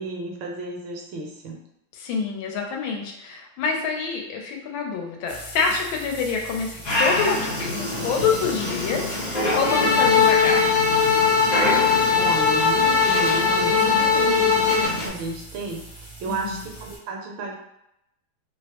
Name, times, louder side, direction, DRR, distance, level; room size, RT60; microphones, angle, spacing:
voice 1, 0.0-1.6 12.1-17.5, right 3 dB, 75° right, 0 dB, 1.3 m, -32 dB
voice 2, 1.9-10.7 16.3-16.6, left 5 dB, 80° left, 1 dB, 1.4 m, -27 dB
sound 1, 5.3-17.0, equal, 30° left, 0.6 m, -39 dB
Dog, 6.8-15.1, left 1 dB, 50° left, 1.4 m, -27 dB
sound 2, 9.6-14.9, left 5 dB, 40° right, 0.6 m, -19 dB
3.3 x 2.0 x 2.8 m, 0.83 s
omnidirectional pair, 2.2 m